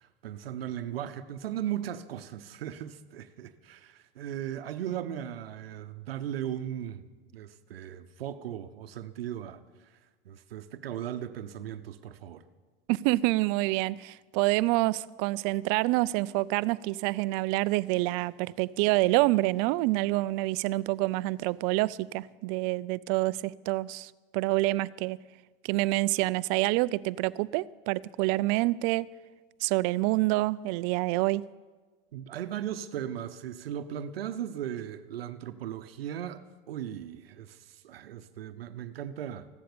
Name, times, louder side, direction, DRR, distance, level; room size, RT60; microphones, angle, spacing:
voice 1, 0.0-7.0 7.3-9.9 10.2-12.4 32.1-39.5, right 10 dB, 90° right, 0.9 m, -37 dB
voice 2, 12.9-25.2 25.6-29.1 29.6-31.5, right 19 dB, 50° right, 0.5 m, -27 dB
15.5 x 12.0 x 6.8 m
hypercardioid pair, 110°, 29 cm